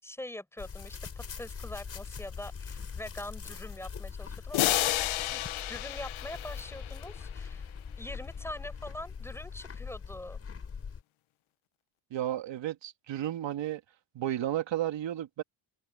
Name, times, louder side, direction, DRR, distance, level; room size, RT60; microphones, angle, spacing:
voice 1, 0.0-5.0 5.3-7.7 8.0-10.4, left 1 dB, 5° left, 7.7 m, -43 dB
sound 1, 0.6-11.0, left 6 dB, 30° left, 4.8 m, -42 dB
sound 2, 4.5-7.2, left 16 dB, 80° left, 0.8 m, -31 dB
voice 2, 12.1-13.8 14.1-15.4, right 12 dB, 65° right, 2.3 m, -33 dB
cardioid pair, 175°, 48 cm